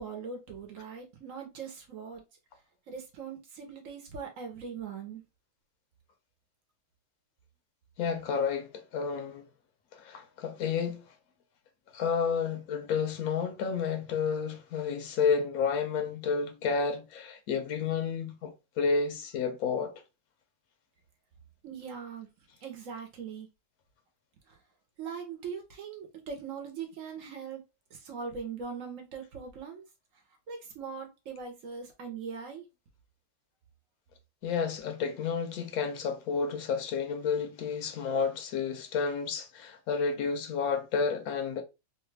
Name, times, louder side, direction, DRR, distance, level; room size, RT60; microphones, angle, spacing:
voice 1, 0.0-2.2 2.9-5.2 21.6-22.3 22.6-23.5 24.5-24.6 25.0-27.6 27.9-29.8 30.5-32.6, right 6 dB, 65° right, 1.1 m, -41 dB
voice 2, 8.0-9.5 9.9-11.0 11.9-19.9 34.4-41.6, left 5 dB, 85° left, 1.1 m, -31 dB
3.2 x 2.2 x 3.2 m
omnidirectional pair, 1.5 m